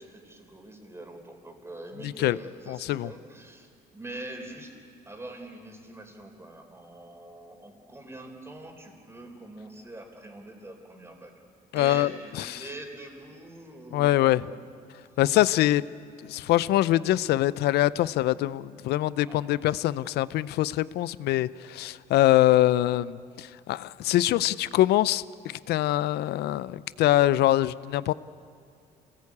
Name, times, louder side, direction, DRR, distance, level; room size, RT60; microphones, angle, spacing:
voice 1, 0.0-11.3 11.7-14.5 19.3-19.4, right 1 dB, 15° right, 4 dB, 4.0 m, -44 dB
voice 2, 2.0-2.4 2.7-3.1 11.7-12.1 12.4-12.6 13.9-14.4 15.2-15.8 16.2-25.2 25.7-28.1, left 14 dB, 75° left, 18 dB, 0.6 m, -24 dB
27.0 x 19.0 x 8.5 m, 2.5 s
cardioid pair, 110°, 17 cm